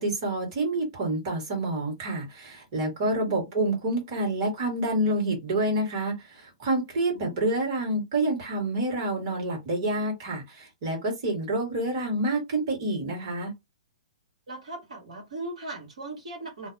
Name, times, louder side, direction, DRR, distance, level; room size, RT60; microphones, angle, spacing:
voice 1, 0.0-13.5, right 1 dB, 45° right, 1.5 m, -28 dB
voice 2, 14.5-16.7, right 2 dB, 75° right, 1.3 m, -38 dB
2.6 x 2.0 x 2.6 m
hypercardioid pair, 120°, 4 cm